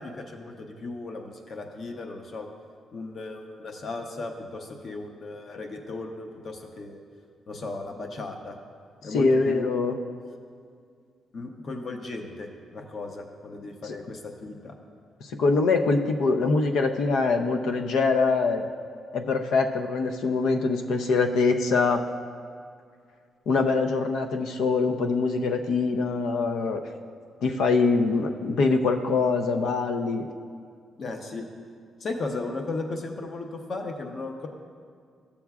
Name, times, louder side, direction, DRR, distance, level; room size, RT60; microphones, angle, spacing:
voice 1, 0.0-2.5 2.9-7.0 7.5-8.6 9.0-9.8 11.3-14.7 31.0-31.5 32.0-34.5, left 3 dB, 45° left, 4 dB, 0.8 m, -36 dB
voice 2, 9.0-10.0 13.8-14.0 15.2-18.7 19.1-22.0 23.5-26.9 27.4-30.3, left 4 dB, 80° left, 5 dB, 0.5 m, -24 dB
13.5 x 7.0 x 2.4 m, 2.2 s
cardioid pair, 140°, 0 cm